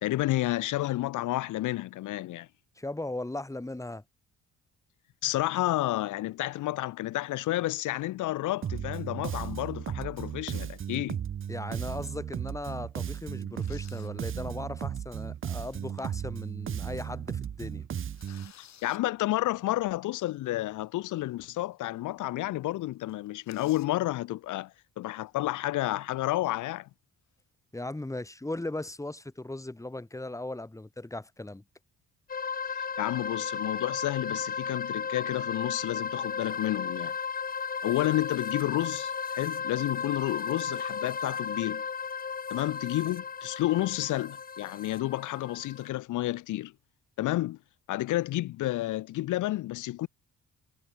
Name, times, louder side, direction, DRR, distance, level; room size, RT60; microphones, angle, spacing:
voice 1, 0.0-2.5 5.2-11.2 18.8-26.9 33.0-37.1 37.8-41.8 42.5-46.7 47.2-47.6 47.9-50.1, left 16 dB, 85° left, 1.1 m, -30 dB
voice 2, 2.8-4.0 11.5-17.9 27.7-31.6, left 2 dB, 10° left, 2.9 m, -38 dB
Bass guitar, 8.6-18.5, right 9 dB, 45° right, 0.8 m, -35 dB
sound 1, 12.0-12.3 12.8-12.9 13.4-14.2 14.6-14.7 15.5-16.3 16.7-16.8 17.1-17.3 17.7-19.0 21.0-21.1 21.6-21.7 22.0-22.1 22.4-22.5 22.8-24.0 25.0-25.3 25.8-26.5, left 9 dB, 65° left, 7.4 m, -55 dB
sound 2, 32.3-45.9, left 6 dB, 30° left, 0.9 m, -35 dB
cardioid pair, 90°, 30 cm